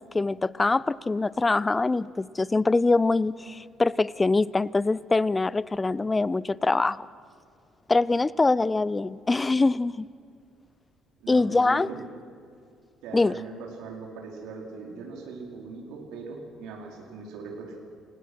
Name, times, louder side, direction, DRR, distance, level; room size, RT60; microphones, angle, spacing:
voice 1, 0.0-7.1 7.9-10.1 11.3-11.9 13.1-13.4, left 3 dB, 20° left, 21 dB, 0.5 m, -24 dB
voice 2, 11.2-12.0 13.0-17.8, right 4 dB, 65° right, 0 dB, 4.3 m, -40 dB
29.5 x 17.5 x 6.3 m, 2.3 s
figure-of-eight pair, 50°, 0 cm